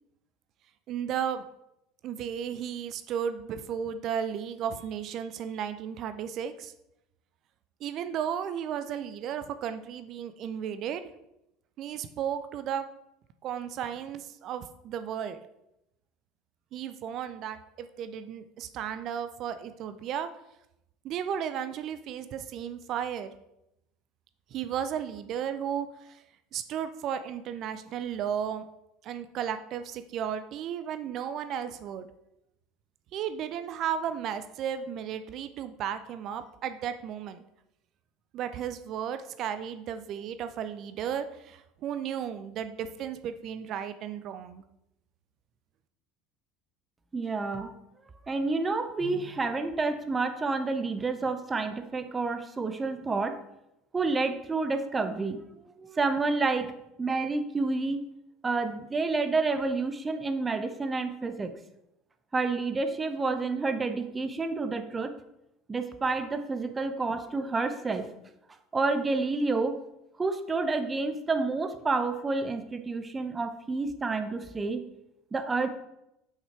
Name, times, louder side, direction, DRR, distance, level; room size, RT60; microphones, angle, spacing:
voice 1, 0.9-1.5 2.0-6.7 7.8-11.0 11.8-12.9 13.4-15.4 16.7-20.3 21.0-23.3 24.5-26.2 26.5-28.7 29.0-32.1 33.1-37.4 38.3-44.6, right 8 dB, 50° right, 10 dB, 0.5 m, -34 dB
voice 2, 47.1-47.7 48.3-53.4 53.9-55.4 55.8-56.7 57.0-58.0 58.4-61.6 62.3-65.1 65.7-68.1 68.7-69.8 70.2-74.8 75.3-75.7, right 3 dB, 20° right, 9 dB, 0.9 m, -29 dB
5.7 x 5.6 x 4.6 m, 0.85 s
figure-of-eight pair, 70°, 0 cm